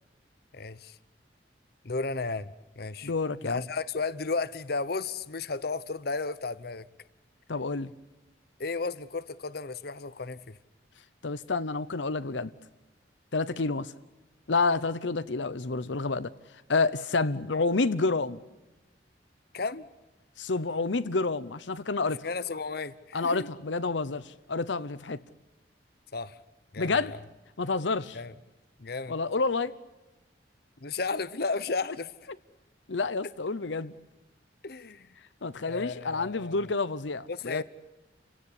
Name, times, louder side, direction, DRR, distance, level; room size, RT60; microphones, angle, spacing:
voice 1, 0.5-1.0 1.8-2.5 2.8-3.1 3.4-6.9 8.6-10.6 19.5-19.9 22.2-23.5 26.1-26.4 26.7-27.0 28.1-28.3 28.8-29.1 30.8-32.1 34.6-35.1 35.7-36.6 37.3-37.6, left 4 dB, 55° left, 0.9 m, -33 dB
voice 2, 3.0-3.6 7.5-7.9 11.2-12.5 13.3-13.9 14.5-16.3 16.7-18.4 20.4-22.3 23.1-25.2 26.8-27.1 27.6-28.2 29.1-29.8 32.9-33.9 35.4-37.6, left 3 dB, 90° left, 0.9 m, -29 dB
29.0 x 17.0 x 9.9 m
head